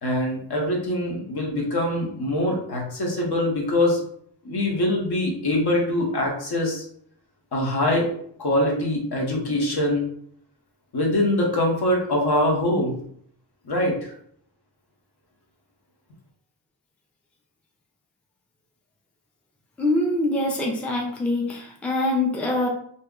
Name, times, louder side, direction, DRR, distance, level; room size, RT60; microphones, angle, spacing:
voice 1, 0.0-4.0 4.4-6.8 7.5-8.1 8.4-10.0 10.9-13.0 13.6-14.1, left 1 dB, 55° left, -1 dB, 1.0 m, -23 dB
voice 2, 19.8-22.7, left 2 dB, 5° left, -1 dB, 0.4 m, -24 dB
2.7 x 2.1 x 3.6 m, 0.65 s
wide cardioid pair, 100°, 45 cm